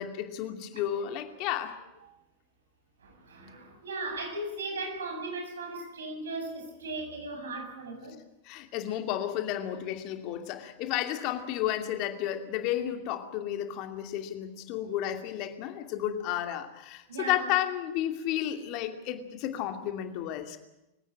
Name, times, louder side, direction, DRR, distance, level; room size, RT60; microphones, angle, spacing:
voice 1, 0.0-1.8 8.4-20.6, left 11 dB, 40° left, 2.6 m, -32 dB
voice 2, 3.0-8.2 17.1-17.4, right 2 dB, 70° right, 7.8 m, -37 dB
25.0 x 16.5 x 8.9 m
figure-of-eight pair, 90°, 0 cm